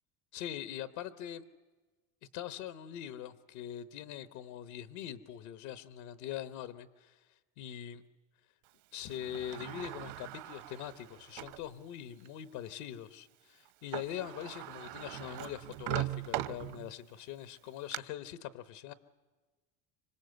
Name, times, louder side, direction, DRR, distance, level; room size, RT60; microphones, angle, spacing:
voice 1, 0.3-1.4 2.3-7.3 7.6-8.0 8.9-18.9, left 11 dB, 80° left, 13 dB, 1.2 m, -42 dB
Sliding door, 9.1-11.7 12.3-12.4 13.7-13.8 13.9-17.1 17.6-18.0, right 16 dB, 65° right, 1.0 m, -40 dB
25.5 x 25.5 x 7.9 m, 1.3 s
supercardioid pair, 115°, 45 cm